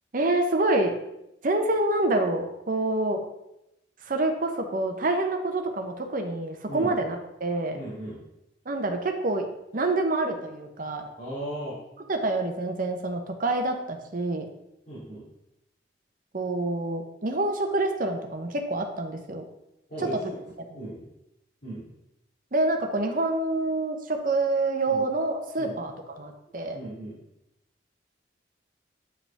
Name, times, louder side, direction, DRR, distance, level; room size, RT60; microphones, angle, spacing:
voice 1, 0.1-0.9 1.4-3.2 4.0-7.8 8.7-9.5 9.7-11.0 12.1-14.4 16.3-19.4 22.5-25.9 26.2-26.8, right 2 dB, 50° right, 5 dB, 0.8 m, -27 dB
voice 2, 7.7-8.2 11.2-11.8 14.9-15.2 19.9-20.4 20.7-21.0 21.6-21.8 24.9-25.0 25.6-25.8 26.7-27.2, right 1 dB, 45° left, -11 dB, 2.8 m, -36 dB
8.7 x 4.8 x 3.5 m, 0.87 s
head